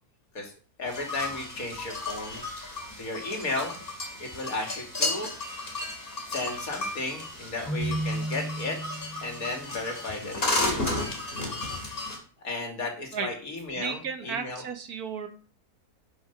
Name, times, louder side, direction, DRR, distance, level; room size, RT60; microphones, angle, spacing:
voice 1, 0.8-3.8 4.2-5.3 6.2-8.8 9.2-10.9 12.4-14.6, left 2 dB, 60° left, 2 dB, 2.6 m, -34 dB
sound 1, 0.9-12.2, left 2 dB, 35° left, 3.0 m, -33 dB
Keyboard (musical), 7.7-9.5, right 1 dB, 5° left, 2.0 m, -33 dB
voice 2, 13.8-15.3, right 6 dB, 70° right, 7 dB, 1.7 m, -33 dB
10.5 x 5.3 x 5.7 m, 0.39 s
omnidirectional pair, 1.7 m